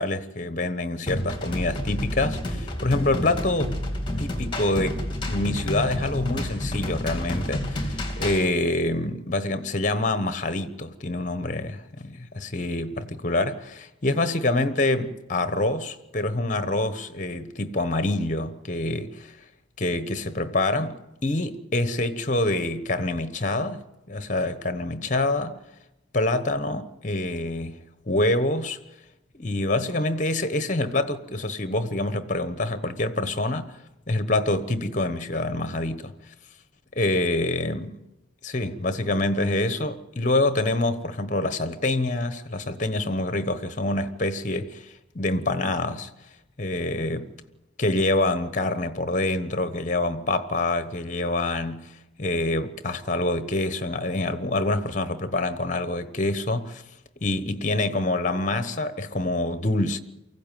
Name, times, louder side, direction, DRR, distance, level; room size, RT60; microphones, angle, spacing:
voice 1, 0.0-3.8 4.2-19.3 19.8-25.6 26.1-27.8 28.1-28.8 29.3-33.8 34.1-36.1 36.9-38.0 38.4-44.9 45.1-46.1 46.6-47.3 47.8-51.9 52.2-56.8 57.2-60.0, left 2 dB, 40° left, 1.1 m, -26 dB
sound 1, 1.1-8.5, left 1 dB, 25° left, 2.8 m, -29 dB
24.0 x 15.5 x 9.1 m
head